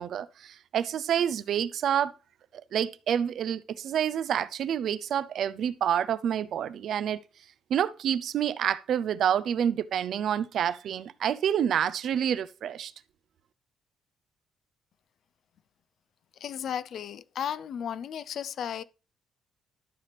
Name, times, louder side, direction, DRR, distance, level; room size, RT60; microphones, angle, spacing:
voice 1, 0.0-2.1 2.7-7.2 7.7-12.9, right 9 dB, 70° right, 0.5 m, -28 dB
voice 2, 16.4-18.8, left 8 dB, 65° left, 0.4 m, -34 dB
12.5 x 5.8 x 3.4 m
cardioid pair, 90°, 0 cm